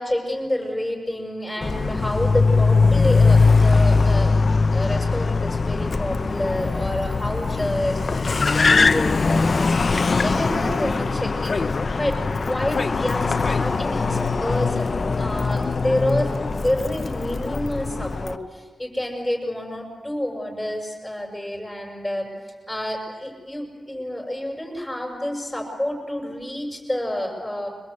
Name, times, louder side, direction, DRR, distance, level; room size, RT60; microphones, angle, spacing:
voice 1, 0.0-4.3 4.7-22.3 22.7-27.7, left 1 dB, 5° left, -1 dB, 6.5 m, -28 dB
Car, 1.6-18.4, left 4 dB, 55° left, 0.9 m, -21 dB
23.0 x 21.0 x 8.5 m, 1.5 s
cardioid pair, 55°, 0 cm